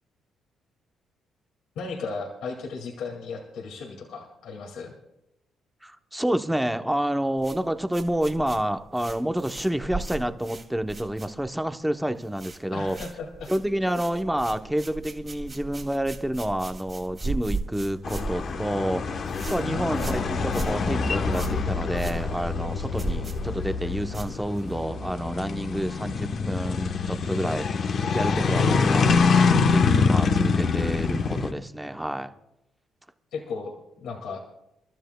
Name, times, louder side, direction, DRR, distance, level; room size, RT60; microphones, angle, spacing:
voice 1, 1.8-4.9 12.7-13.5 13.8-13.9 19.6-20.3 28.5-29.0 33.3-34.4, left 4 dB, 80° left, 1 dB, 2.2 m, -36 dB
voice 2, 5.8-13.0 13.5-29.2 29.5-32.3, right 1 dB, 5° right, 8 dB, 0.9 m, -29 dB
sound 1, 7.4-11.7 12.0-12.6 12.9-24.8, right 3 dB, 35° right, 2.5 m, -37 dB
sound 2, 18.0-31.5, left 4 dB, 55° left, 1.1 m, -25 dB
28.5 x 12.5 x 2.3 m, 0.86 s
cardioid pair, 90°, 0 cm